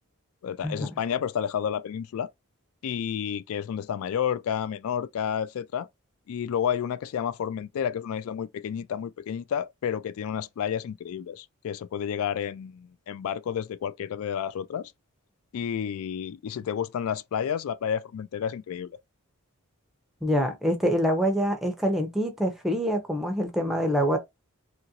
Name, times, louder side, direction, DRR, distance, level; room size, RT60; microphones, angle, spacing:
voice 1, 0.4-2.3 2.8-5.9 6.3-14.9 15.5-18.9, left 8 dB, 70° left, 0.3 m, -30 dB
voice 2, 20.2-24.2, equal, ahead, 0.5 m, -25 dB
2.9 x 2.5 x 2.8 m
head